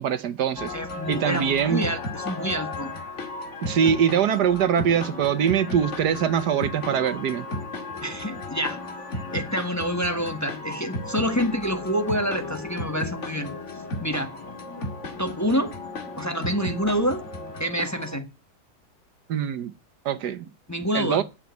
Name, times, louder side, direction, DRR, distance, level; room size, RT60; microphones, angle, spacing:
voice 1, 0.0-0.7 1.1-1.8 3.6-7.5 19.3-19.7 20.0-20.5 20.9-21.2, right 8 dB, 70° right, 1.5 m, -23 dB
sound 1, 0.6-18.2, left 2 dB, 45° left, 2.4 m, -34 dB
voice 2, 0.7-2.9 8.0-8.8 9.3-14.3 15.2-15.7 16.2-17.2 17.6-18.3 20.7-21.2, equal, 10° left, 1.5 m, -27 dB
9.9 x 7.6 x 9.2 m
omnidirectional pair, 1.8 m